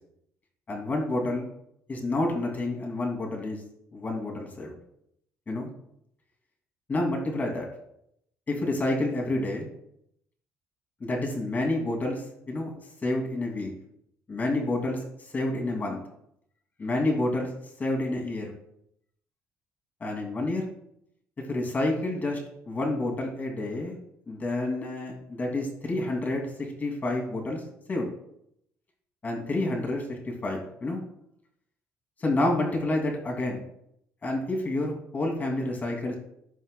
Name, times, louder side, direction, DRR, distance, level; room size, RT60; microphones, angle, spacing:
voice 1, 0.7-1.5 1.9-3.6 3.9-4.7 5.5-5.7 6.9-7.7 8.5-9.6 11.0-12.7 13.0-13.7 14.3-15.0 15.3-16.0 16.8-17.5 17.8-18.5 20.0-20.7 21.5-22.4 22.7-23.9 24.3-26.5 26.8-27.6 27.9-28.1 29.2-31.0 32.2-33.6 34.2-36.2, left 2 dB, 30° left, 1 dB, 2.5 m, -29 dB
15.0 x 5.4 x 2.2 m, 0.73 s
cardioid pair, 120°, 6 cm